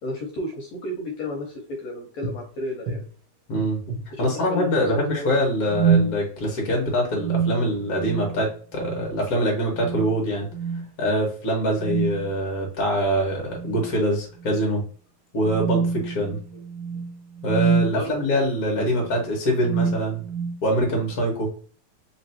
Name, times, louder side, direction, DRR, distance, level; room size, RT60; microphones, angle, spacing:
voice 1, 0.0-3.0 4.2-5.3 17.9-18.1, left 2 dB, 70° left, 1 dB, 1.9 m, -32 dB
sound 1, 2.2-2.4 2.9-3.0 3.6-4.1 5.7-6.2 7.2-8.4 8.8-9.1 9.7-10.2 10.5-10.8 11.8-12.3 13.5-14.0 14.4-14.6 15.4-18.0 18.9-19.1 19.6-20.6, right 6 dB, 60° right, 1.3 m, -26 dB
voice 2, 3.5-3.8 4.2-10.5 11.0-14.8 15.3-16.4 17.4-20.2 20.6-21.5, equal, 40° left, -1 dB, 1.5 m, -24 dB
4.5 x 3.1 x 2.8 m, 0.43 s
omnidirectional pair, 3.5 m